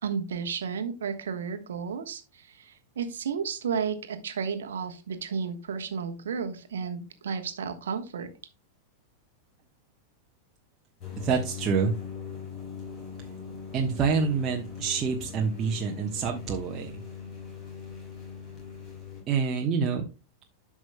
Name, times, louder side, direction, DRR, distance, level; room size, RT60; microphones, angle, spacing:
voice 1, 0.0-8.3, right 6 dB, 65° right, 7 dB, 1.3 m, -33 dB
sound 1, 11.0-19.2, left 6 dB, 35° left, 4.8 m, -41 dB
voice 2, 11.2-11.9 13.7-17.0 19.3-20.0, right 5 dB, 30° right, 0 dB, 1.2 m, -27 dB
12.0 x 6.2 x 2.2 m, 0.30 s
figure-of-eight pair, 90°, 0 cm